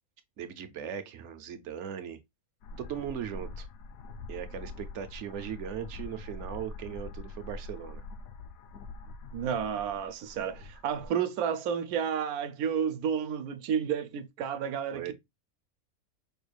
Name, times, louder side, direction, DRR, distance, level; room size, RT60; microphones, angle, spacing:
voice 1, 0.4-2.2 2.8-3.7 4.3-8.0 14.9-15.1, right 9 dB, 65° right, 0.8 m, -38 dB
sound 1, 2.6-11.1, left 3 dB, 75° left, 1.0 m, -44 dB
voice 2, 9.3-15.1, right 8 dB, 85° right, 1.1 m, -31 dB
5.1 x 2.3 x 3.1 m
omnidirectional pair, 1.5 m